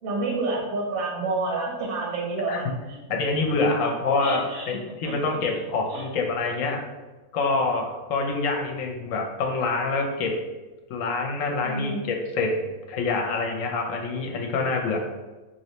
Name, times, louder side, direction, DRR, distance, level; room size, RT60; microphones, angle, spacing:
voice 1, 0.0-3.0 4.2-5.4 5.9-6.1 11.6-12.0, right 3 dB, 80° right, -2 dB, 1.3 m, -29 dB
voice 2, 3.1-6.8 7.3-10.3 10.9-15.0, left 3 dB, 75° left, 1 dB, 0.9 m, -26 dB
3.0 x 2.6 x 3.0 m, 1.2 s
omnidirectional pair, 1.4 m